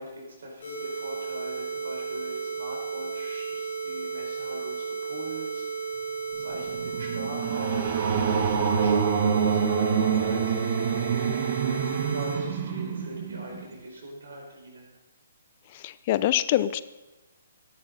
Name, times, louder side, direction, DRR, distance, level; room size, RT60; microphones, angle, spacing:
voice 1, 0.0-5.9 6.4-10.6 11.6-14.9, right 1 dB, 60° right, -1 dB, 5.5 m, -41 dB
sound 1, 0.6-12.4, right 5 dB, 60° left, 3.9 m, -34 dB
sound 2, 6.4-13.7, right 7 dB, 40° right, 1.4 m, -26 dB
voice 2, 15.8-16.8, left 13 dB, 35° left, 16 dB, 0.4 m, -24 dB
18.5 x 11.5 x 4.2 m, 1.1 s
figure-of-eight pair, 130°, 0 cm